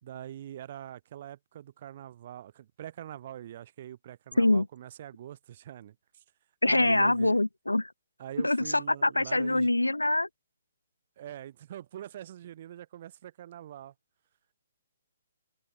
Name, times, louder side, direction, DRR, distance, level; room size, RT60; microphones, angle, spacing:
voice 1, 0.0-6.2 6.6-7.4 8.2-9.7 11.2-13.9, right 11 dB, 40° right, 2.6 m, -44 dB
voice 2, 4.4-4.7 6.6-7.9 8.4-10.3, left 2 dB, 80° left, 0.8 m, -24 dB
figure-of-eight pair, 130°, 0 cm